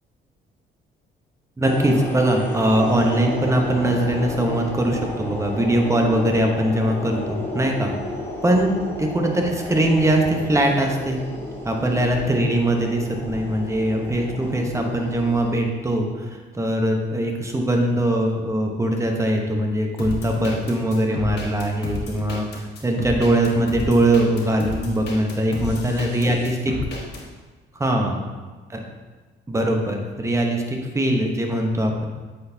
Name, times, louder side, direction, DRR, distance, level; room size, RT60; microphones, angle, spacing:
sound 1, 1.6-15.5, left 1 dB, 10° left, 1.2 m, -32 dB
voice 1, 1.6-7.9 8.4-8.7 9.0-11.2 11.6-26.5 27.8-28.2 29.5-32.0, right 1 dB, 15° right, 2 dB, 0.9 m, -21 dB
sound 2, 20.0-27.2, left 2 dB, 60° left, 1.4 m, -32 dB
8.4 x 4.1 x 2.7 m, 1.3 s
cardioid pair, 90°, 20 cm